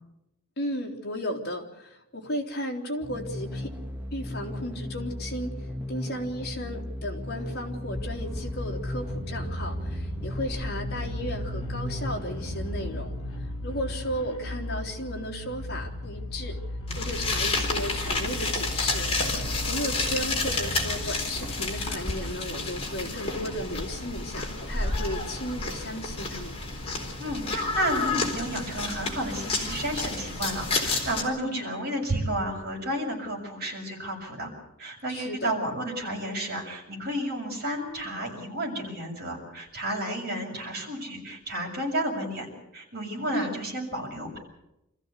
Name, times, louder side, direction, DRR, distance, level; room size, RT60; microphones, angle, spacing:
voice 1, 0.6-3.7 4.1-16.6 16.9-26.5 31.4-31.7 35.1-35.5 43.3-43.5, equal, 45° left, 1 dB, 3.5 m, -35 dB
sound 1, 3.0-13.7, left 1 dB, 10° right, 1.9 m, -36 dB
sound 2, 7.9-22.0, equal, 70° left, 3.0 m, -36 dB
sound 3, 16.9-31.2, left 3 dB, 25° left, 4.1 m, -30 dB
voice 2, 27.2-34.5 34.8-42.5 42.7-44.4, right 1 dB, 45° right, 0 dB, 7.0 m, -32 dB
26.5 x 15.0 x 8.3 m, 0.88 s
head